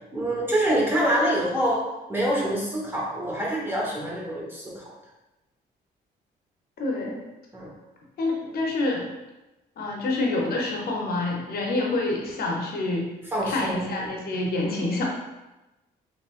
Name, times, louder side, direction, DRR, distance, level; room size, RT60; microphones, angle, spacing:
voice 1, 0.1-1.8 2.1-4.9 7.5-7.7 13.3-14.2, right 1 dB, 15° right, -4 dB, 1.2 m, -26 dB
voice 2, 6.8-7.2 8.2-9.1 9.8-13.1 13.4-15.0, left 2 dB, 65° left, -1 dB, 0.8 m, -27 dB
3.7 x 3.3 x 2.4 m, 1.0 s
cardioid pair, 105°, 17 cm